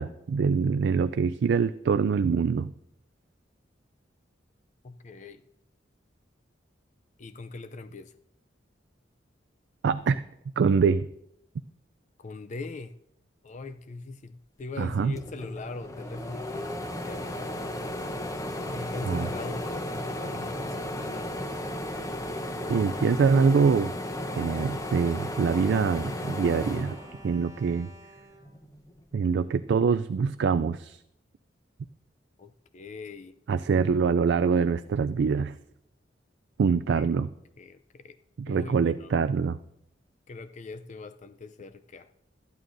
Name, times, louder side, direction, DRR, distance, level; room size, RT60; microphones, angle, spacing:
voice 1, 0.0-2.7 9.8-10.2 10.6-11.1 14.8-15.2 19.1-19.3 22.7-23.9 24.4-27.0 27.2-27.9 29.1-31.0 33.5-35.6 36.6-37.3 38.4-39.6, right 5 dB, 65° right, 12 dB, 0.3 m, -24 dB
voice 2, 4.8-5.4 7.2-8.1 12.2-13.0 13.4-18.1 18.6-21.6 21.9-22.8 32.4-33.3 36.9-37.3 37.6-38.2 38.5-39.1 40.3-42.1, left 3 dB, 40° left, 11 dB, 0.4 m, -42 dB
sound 1, 14.8-14.9 15.1-27.7 28.2-29.3, left 1 dB, 20° left, 0.9 m, -34 dB
Bowed string instrument, 23.4-29.4 30.1-30.2 30.5-30.6, equal, 15° right, 1.1 m, -51 dB
20.0 x 12.5 x 2.6 m, 0.81 s
head